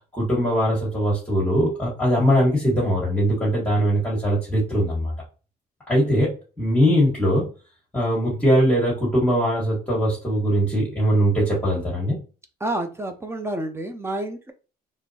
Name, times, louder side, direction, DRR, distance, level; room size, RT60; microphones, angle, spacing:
voice 1, 0.1-5.1 5.9-7.5 7.9-12.2, equal, 10° left, 1.5 m, -21 dB
voice 2, 12.6-14.5, right 1 dB, 15° right, 0.5 m, -29 dB
4.3 x 3.1 x 2.8 m
cardioid pair, 110°, 17 cm